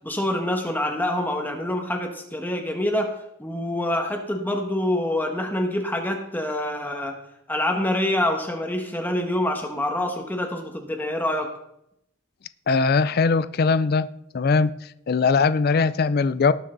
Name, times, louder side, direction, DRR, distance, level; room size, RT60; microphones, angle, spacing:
voice 1, 0.0-3.1 3.4-7.1 7.5-11.5, left 1 dB, 10° left, 3 dB, 1.3 m, -26 dB
voice 2, 12.7-14.1 14.3-14.7 15.1-16.5, left 4 dB, 50° left, 14 dB, 0.4 m, -20 dB
18.5 x 6.6 x 3.9 m, 0.78 s
head